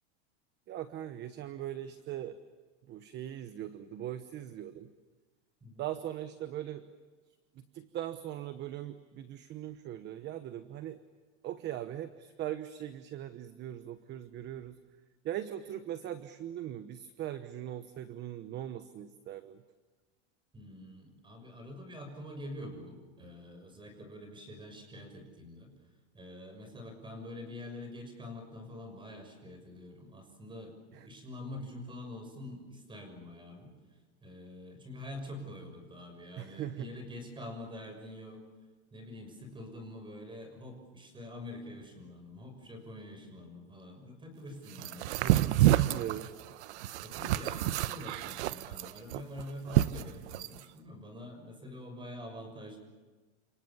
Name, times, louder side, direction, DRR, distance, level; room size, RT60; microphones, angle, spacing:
voice 1, 0.7-2.4 2.9-4.9 5.8-6.8 7.7-11.0 11.4-14.8 15.2-19.6 36.4-36.9 45.1-46.3, right 12 dB, 30° right, 11 dB, 1.1 m, -40 dB
voice 2, 20.5-25.7 26.1-33.7 34.2-38.4 38.9-45.1 45.6-46.2 47.0-52.8, left 1 dB, 15° right, 5 dB, 6.2 m, -46 dB
sound 1, 44.8-50.6, right 14 dB, 70° right, 1.0 m, -28 dB
29.5 x 27.5 x 7.3 m, 1.3 s
supercardioid pair, 150°, 36 cm